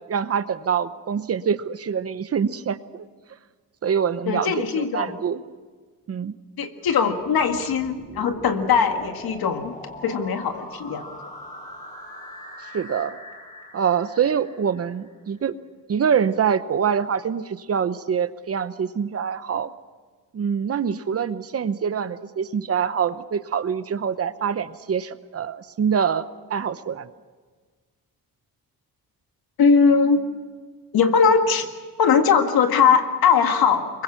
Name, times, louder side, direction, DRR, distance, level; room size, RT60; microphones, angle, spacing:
voice 1, 0.1-3.1 3.8-5.4 6.1-6.3 12.7-13.2 13.7-15.5 15.9-19.7 20.3-27.1, right 7 dB, 40° right, 13 dB, 0.9 m, -25 dB
voice 2, 4.3-5.1 6.6-9.8 10.0-11.1 29.6-30.2 30.9-31.7 32.0-34.0, left 6 dB, 85° left, 6 dB, 1.9 m, -20 dB
sound 1, 7.2-15.1, left 1 dB, 20° left, 5.0 m, -41 dB
25.5 x 22.5 x 6.0 m, 1.5 s
wide cardioid pair, 175°, 36 cm